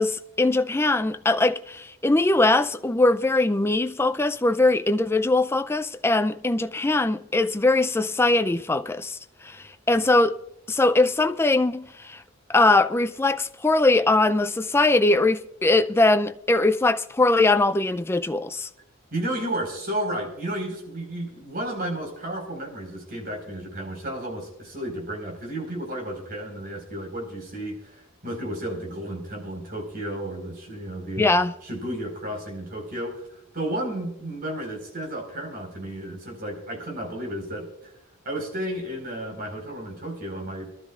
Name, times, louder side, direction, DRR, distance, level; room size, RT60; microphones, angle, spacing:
voice 1, 0.0-9.2 9.4-10.4 10.7-12.2 12.5-18.7 31.2-31.5, left 2 dB, 10° left, 0.4 m, -21 dB
voice 2, 19.1-33.3 33.5-37.9 38.2-40.7, right 1 dB, 45° right, 4.6 m, -32 dB
25.0 x 12.5 x 2.4 m
head